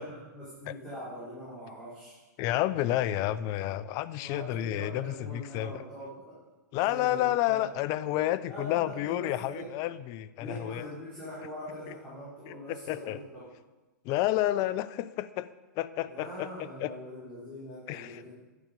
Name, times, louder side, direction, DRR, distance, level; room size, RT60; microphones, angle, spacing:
voice 1, 0.0-2.2 4.2-6.4 6.7-7.6 8.5-9.9 10.4-13.5 16.1-18.3, equal, 15° left, -10 dB, 4.6 m, -42 dB
voice 2, 2.4-5.8 6.7-10.9 12.5-13.2 14.0-15.5 15.8-16.5 16.8-16.9 17.9-18.2, left 14 dB, 35° left, 16 dB, 0.5 m, -30 dB
11.5 x 8.8 x 5.3 m, 1.2 s
hypercardioid pair, 125°, 10 cm